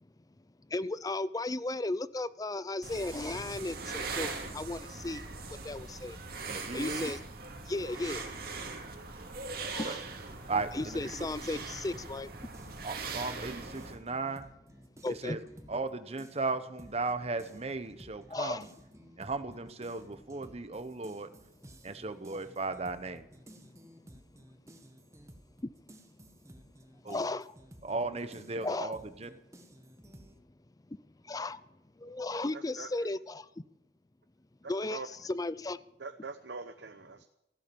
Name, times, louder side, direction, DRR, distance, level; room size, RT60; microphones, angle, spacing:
voice 1, 0.7-4.3 4.5-5.2 5.6-6.2 6.7-7.2 7.7-8.2 9.7-10.0 10.7-12.3 15.0-15.4 18.3-18.6 27.1-27.5 28.6-29.0 31.3-31.6 32.0-33.4 34.7-35.8, left 2 dB, 20° left, 17 dB, 0.5 m, -35 dB
sound 1, 2.8-13.9, right 4 dB, 60° right, 2.5 m, -41 dB
voice 2, 6.5-7.1 9.8-10.0 10.5-11.3 12.8-14.5 15.2-15.4 15.7-18.6 19.2-21.3 21.8-23.3 27.0-27.3 27.8-29.3, right 3 dB, 35° right, 11 dB, 1.0 m, -36 dB
sound 2, 11.9-15.9 16.2-30.4, right 1 dB, 15° right, 1.4 m, -55 dB
voice 3, 32.5-33.1 34.6-35.1 36.0-37.2, right 4 dB, 75° right, 8 dB, 0.8 m, -43 dB
15.0 x 12.0 x 7.0 m, 0.90 s
head